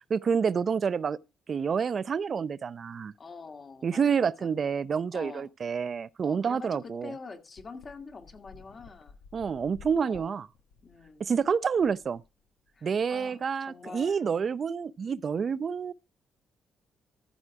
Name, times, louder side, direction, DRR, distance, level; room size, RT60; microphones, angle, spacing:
voice 1, 0.1-1.2 1.5-3.1 3.8-7.1 9.3-10.5 11.2-12.2 12.8-15.9, right 6 dB, 45° right, 0.5 m, -28 dB
voice 2, 3.2-4.5 5.1-5.5 6.2-9.2 9.9-10.3 10.8-11.2 12.7-14.2, left 4 dB, 40° left, 1.9 m, -45 dB
sound 1, 6.5-6.6 6.9-7.0 7.6-12.7, left 5 dB, 85° left, 1.6 m, -54 dB
14.5 x 4.9 x 4.7 m
cardioid pair, 90°, 0 cm